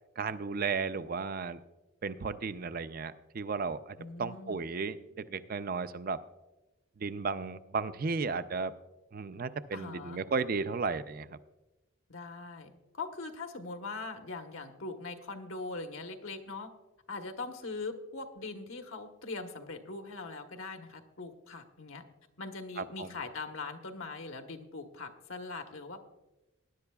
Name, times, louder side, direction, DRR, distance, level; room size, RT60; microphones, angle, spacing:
voice 1, 0.2-1.6 2.0-6.2 7.0-8.7 9.1-11.3 22.8-23.1, right 4 dB, 45° right, 13 dB, 0.4 m, -34 dB
voice 2, 4.0-4.6 9.7-10.2 12.1-16.7 17.1-22.0 22.4-26.0, left 3 dB, 80° left, 5 dB, 1.2 m, -41 dB
19.5 x 10.5 x 2.3 m, 1.0 s
head